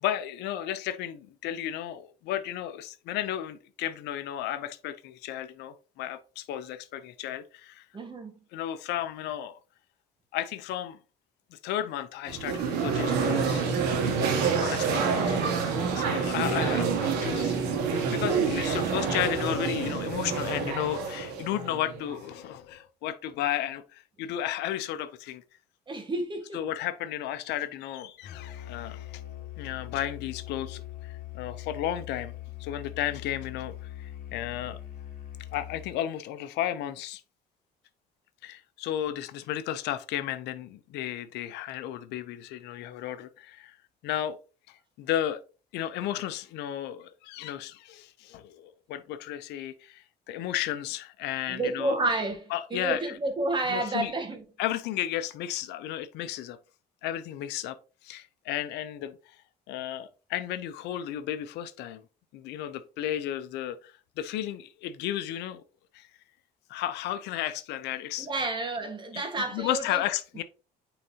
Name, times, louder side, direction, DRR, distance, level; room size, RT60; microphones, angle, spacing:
voice 1, 0.0-7.8 8.5-9.6 10.3-11.0 11.5-13.7 14.6-25.4 26.5-29.2 29.6-32.3 32.6-34.8 35.5-37.2 38.4-43.8 44.0-44.4 44.7-45.4 45.7-52.0 52.5-53.2 53.7-54.1 54.6-56.6 57.0-57.8 58.0-59.1 59.7-62.0 62.3-65.6 65.9-66.1 66.7-68.3 69.1-69.3 69.5-70.4, left 12 dB, 85° left, 0.7 m, -33 dB
voice 2, 7.9-8.3 14.4-14.6 25.9-26.6 51.5-54.4 68.2-70.0, right 2 dB, 30° right, 1.7 m, -30 dB
sound 1, 12.3-22.3, right 5 dB, 90° right, 1.7 m, -27 dB
Musical instrument, 28.2-36.0, left 13 dB, 60° left, 1.8 m, -41 dB
9.0 x 3.9 x 2.9 m
cardioid pair, 110°, 17 cm